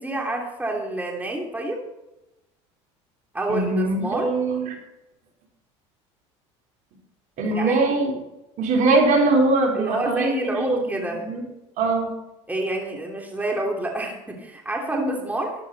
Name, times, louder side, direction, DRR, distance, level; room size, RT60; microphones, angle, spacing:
voice 1, 0.0-1.8 3.3-4.3 7.4-7.8 9.7-11.2 12.5-15.5, right 1 dB, 10° right, 0 dB, 3.1 m, -28 dB
voice 2, 3.5-4.8 7.4-8.1 8.6-11.4 11.8-12.1 14.9-15.0, right 3 dB, 55° right, 1 dB, 4.0 m, -22 dB
13.5 x 12.0 x 4.2 m, 0.95 s
supercardioid pair, 95°, 15 cm